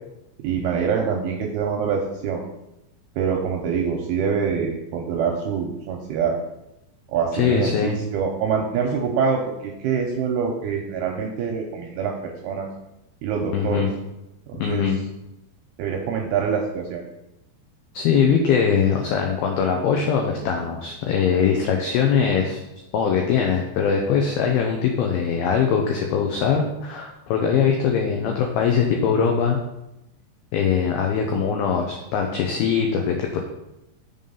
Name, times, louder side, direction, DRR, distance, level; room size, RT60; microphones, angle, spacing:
voice 1, 0.4-2.4 3.2-6.4 7.1-12.1 12.4-12.7 13.2-13.8 14.5-14.8 15.8-17.0, right 6 dB, 80° right, 1 dB, 2.3 m, -25 dB
voice 2, 7.3-8.0 13.5-13.9 14.6-15.0 17.9-22.6 22.9-29.6 30.5-33.4, left 7 dB, 90° left, 2 dB, 2.1 m, -21 dB
6.8 x 3.8 x 5.5 m, 0.89 s
omnidirectional pair, 5.2 m